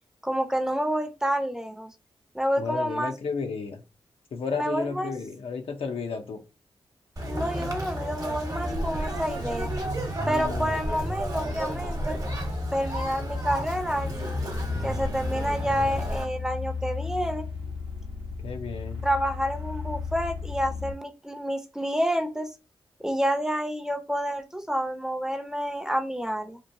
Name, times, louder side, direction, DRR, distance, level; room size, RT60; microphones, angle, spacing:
voice 1, 0.2-1.9 2.3-3.1 4.5-5.1 7.3-9.7 10.3-12.2 12.7-14.4 14.8-17.4 19.0-22.5 23.0-26.6, equal, 5° right, 0.5 m, -29 dB
voice 2, 2.6-3.8 4.3-6.4 10.2-10.7 18.4-19.0, left 5 dB, 75° left, 0.5 m, -33 dB
Conversation, 7.2-16.2, equal, 40° right, 0.9 m, -31 dB
sound 1, 11.1-20.9, left 5 dB, 90° right, 0.7 m, -36 dB
2.9 x 2.2 x 2.6 m
cardioid pair, 50°, 10 cm